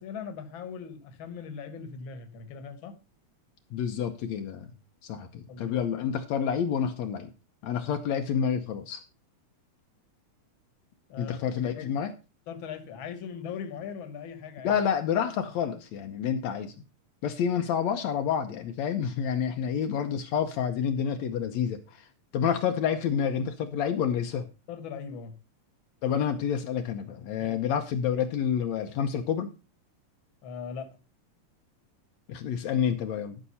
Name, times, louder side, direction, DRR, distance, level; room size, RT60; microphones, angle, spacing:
voice 1, 0.0-3.0 5.5-5.8 11.1-11.9 12.5-14.7 24.7-25.3 27.4-27.5 30.4-30.9, left 6 dB, 50° left, 9 dB, 2.0 m, -40 dB
voice 2, 3.7-4.7 5.0-7.3 7.6-9.0 11.2-12.1 14.6-16.7 17.2-22.1 22.3-24.5 26.0-29.5 32.3-33.4, left 8 dB, 75° left, 6 dB, 2.1 m, -28 dB
13.0 x 6.0 x 5.5 m, 0.30 s
omnidirectional pair, 3.3 m